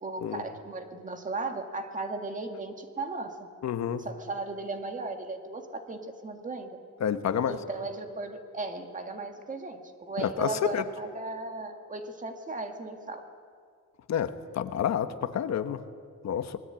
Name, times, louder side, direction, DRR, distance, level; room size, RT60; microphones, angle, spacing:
voice 1, 0.0-3.5 4.0-6.8 7.5-13.2, right 3 dB, 25° right, 5 dB, 1.9 m, -36 dB
voice 2, 3.6-4.0 7.0-7.6 10.2-10.8 14.1-14.3 14.5-15.8 16.2-16.6, left 9 dB, 60° left, 10 dB, 1.2 m, -29 dB
26.0 x 21.0 x 8.9 m, 2.2 s
wide cardioid pair, 175°, 31 cm